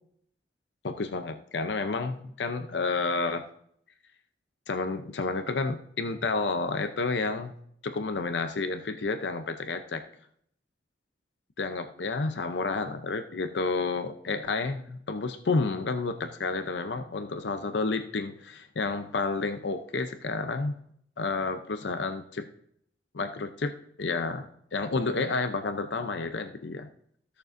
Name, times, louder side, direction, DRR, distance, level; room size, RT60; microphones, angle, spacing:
voice 1, 0.8-3.5 4.7-7.5 7.8-10.0 11.6-20.7 21.2-22.5 23.1-23.7 24.0-26.9, left 3 dB, 70° left, 8 dB, 0.6 m, -30 dB
15.5 x 6.7 x 2.6 m, 0.67 s
head